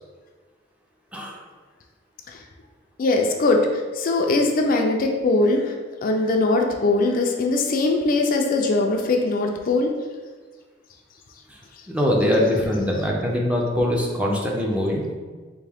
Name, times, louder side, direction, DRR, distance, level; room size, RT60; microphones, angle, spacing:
voice 1, 3.0-3.7 3.9-5.7 6.0-9.9, left 2 dB, 50° left, 2 dB, 0.4 m, -21 dB
voice 2, 11.9-15.1, left 1 dB, 5° right, -2 dB, 0.5 m, -22 dB
3.6 x 2.6 x 3.4 m, 1.4 s
head